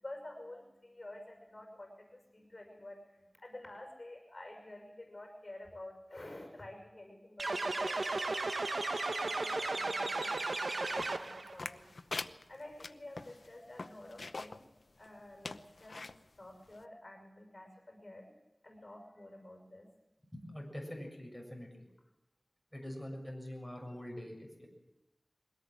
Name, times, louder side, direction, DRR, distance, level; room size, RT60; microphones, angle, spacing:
voice 1, 0.0-8.4 9.1-11.8 12.5-14.6 15.0-16.0 16.4-18.3 18.6-19.9 22.8-22.9, left 1 dB, 45° left, 3 dB, 6.0 m, -50 dB
sound 1, 7.4-11.5, right 2 dB, 80° right, 1.1 m, -35 dB
sound 2, 11.0-14.6 15.0-15.1 15.4-16.2 16.8-16.9, left 3 dB, 85° left, 0.7 m, -43 dB
voice 2, 20.3-21.9 22.7-24.7, left 1 dB, 5° left, 0 dB, 6.8 m, -44 dB
22.5 x 18.0 x 7.9 m, 0.91 s
wide cardioid pair, 60°, 0 cm